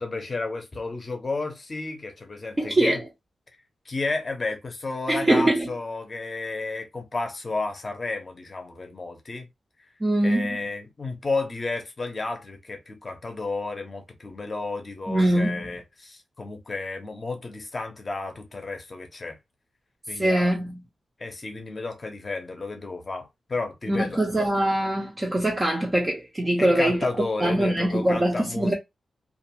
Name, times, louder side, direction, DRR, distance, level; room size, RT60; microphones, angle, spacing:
voice 1, 0.0-3.0 3.8-9.5 10.2-19.4 20.1-20.5 21.2-24.5 26.6-28.7, left 3 dB, 25° left, 0.7 m, -32 dB
voice 2, 2.6-3.0 5.1-5.7 10.0-10.7 15.1-15.7 20.1-20.8 23.9-27.0 27.4-28.7, right 1 dB, 20° right, 0.5 m, -23 dB
2.5 x 2.3 x 2.7 m
wide cardioid pair, 165°, 0 cm